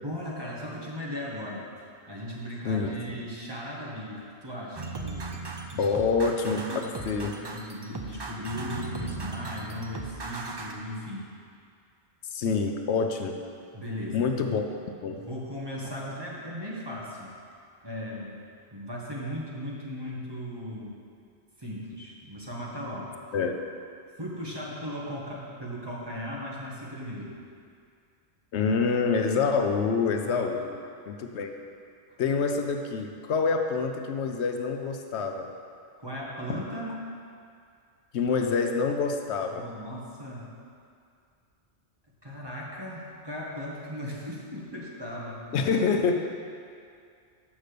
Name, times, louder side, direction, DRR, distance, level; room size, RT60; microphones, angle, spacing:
voice 1, 0.0-1.7 2.1-5.9 6.2-6.9 7.2-11.3 13.7-14.3 15.1-17.3 17.8-18.4 18.7-20.9 21.6-23.1 24.2-27.4 30.1-30.6 36.0-37.0 39.5-40.5 42.2-45.6, equal, 20° right, -5 dB, 1.3 m, -37 dB
voice 2, 2.6-3.0 5.8-7.3 12.2-13.4 14.1-14.7 15.0-15.2 23.3-23.5 28.5-30.8 31.1-31.5 32.2-35.5 38.1-39.6 45.5-46.3, left 5 dB, 75° left, 5 dB, 0.9 m, -26 dB
sound 1, 4.8-10.7, right 3 dB, 40° right, 0.4 m, -37 dB
6.5 x 6.0 x 6.7 m, 2.3 s
omnidirectional pair, 1.2 m